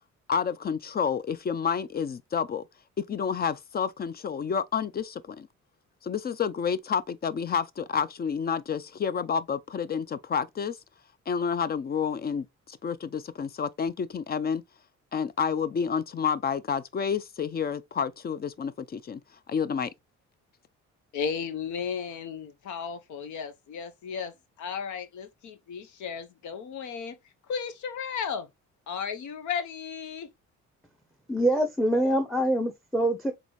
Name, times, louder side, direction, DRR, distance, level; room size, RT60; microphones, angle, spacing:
voice 1, 0.3-2.6 3.0-5.5 6.0-10.8 11.3-14.6 15.1-19.2 19.5-19.9, left 6 dB, 30° left, 0.4 m, -29 dB
voice 2, 21.1-27.2 27.5-28.5 28.9-30.3, left 6 dB, 75° left, 0.9 m, -34 dB
voice 3, 31.3-33.3, right 1 dB, ahead, 0.7 m, -25 dB
4.0 x 3.5 x 3.1 m
cardioid pair, 90°, 30 cm